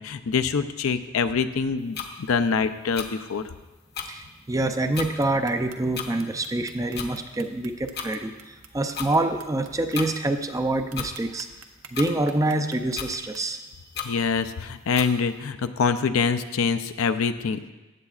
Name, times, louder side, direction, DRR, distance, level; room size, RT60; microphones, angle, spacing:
voice 1, 0.0-3.4 14.0-17.7, left 5 dB, 65° left, 10 dB, 0.5 m, -25 dB
sound 1, 1.9-2.1 2.9-3.1 3.9-4.1 4.9-5.1 5.9-6.1 6.9-7.1 7.9-8.1 8.9-9.1 9.9-10.1 10.9-11.1 11.9-12.1 12.9-13.1 13.9-14.1 14.9-15.1, left 7 dB, 50° left, 0.9 m, -33 dB
voice 2, 4.1-11.5 11.9-13.6, right 2 dB, 15° right, 6 dB, 0.4 m, -26 dB
sound 2, 4.9-10.2 10.6-10.7 10.9-13.4, right 8 dB, 90° right, 0.8 m, -47 dB
15.0 x 8.7 x 2.4 m, 1.1 s
head